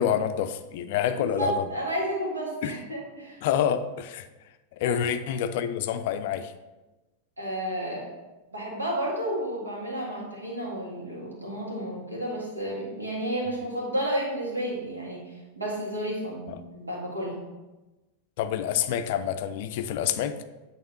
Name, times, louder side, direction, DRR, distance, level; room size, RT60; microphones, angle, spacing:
voice 1, 0.0-1.6 2.6-2.7 3.4-4.3 4.8-6.5 18.4-20.4, left 9 dB, 50° left, 10 dB, 0.4 m, -27 dB
voice 2, 1.1-3.4 4.8-5.0 7.4-8.0 8.5-15.2 15.5-17.4, right 1 dB, 80° right, -3 dB, 1.8 m, -31 dB
8.5 x 3.5 x 4.1 m, 1.1 s
figure-of-eight pair, 90°, 0 cm